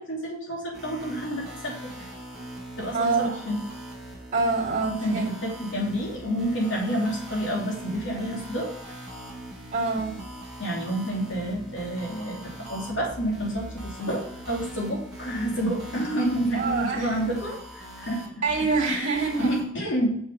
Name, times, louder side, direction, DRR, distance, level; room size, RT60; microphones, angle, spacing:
voice 1, 0.0-2.1 2.8-3.6 4.9-8.7 10.6-18.2 18.9-20.2, equal, 65° left, -1 dB, 2.8 m, -29 dB
sound 1, 0.7-19.6, right 1 dB, 5° right, 2.4 m, -41 dB
voice 2, 2.9-3.4 4.3-5.2 9.7-10.2 16.6-17.2 18.4-19.5, right 4 dB, 40° right, -4 dB, 2.6 m, -26 dB
7.2 x 6.8 x 5.4 m, 0.70 s
head